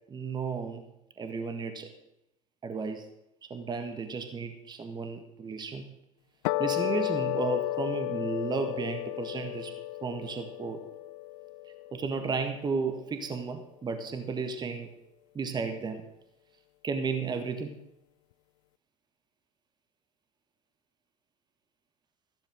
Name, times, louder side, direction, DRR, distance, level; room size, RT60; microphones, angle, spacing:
voice 1, 0.1-0.8 1.2-1.9 2.6-3.1 3.4-5.8 6.6-9.7 10.0-10.8 11.9-14.9 15.3-16.0 16.8-17.8, right 4 dB, 25° right, 7 dB, 1.7 m, -33 dB
sound 1, 6.5-13.0, left 17 dB, 55° left, 0.5 m, -33 dB
14.5 x 13.5 x 3.8 m, 0.83 s
figure-of-eight pair, 75°, 18 cm